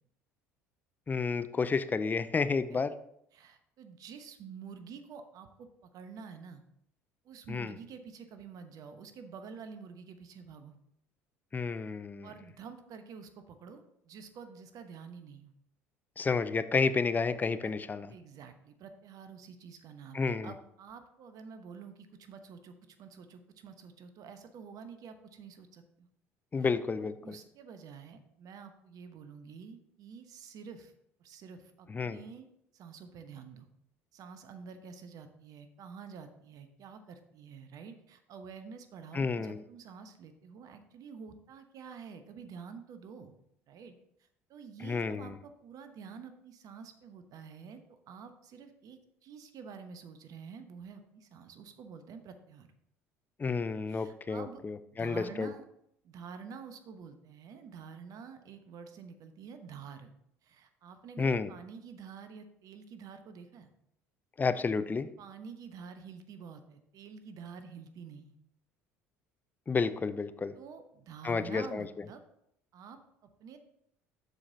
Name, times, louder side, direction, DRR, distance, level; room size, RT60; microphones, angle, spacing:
voice 1, 1.1-2.9 7.5-7.7 11.5-12.3 16.2-18.1 20.1-20.5 26.5-27.4 31.9-32.2 39.1-39.6 44.8-45.3 53.4-55.5 61.2-61.5 64.4-65.1 69.7-70.5 71.2-71.9, left 4 dB, 25° left, 12 dB, 0.5 m, -31 dB
voice 2, 3.3-6.6 7.2-10.8 12.2-15.5 17.6-17.7 18.1-26.1 26.6-26.7 27.0-30.9 31.2-32.5 32.7-33.7 34.1-43.3 43.7-43.9 44.5-52.7 53.9-54.6 54.9-55.6 56.0-60.1 60.4-63.7 65.2-68.3 70.6-72.2 72.7-73.6, right 6 dB, 50° right, 8 dB, 1.0 m, -48 dB
12.5 x 4.9 x 2.8 m, 0.75 s
hypercardioid pair, 60°, 8 cm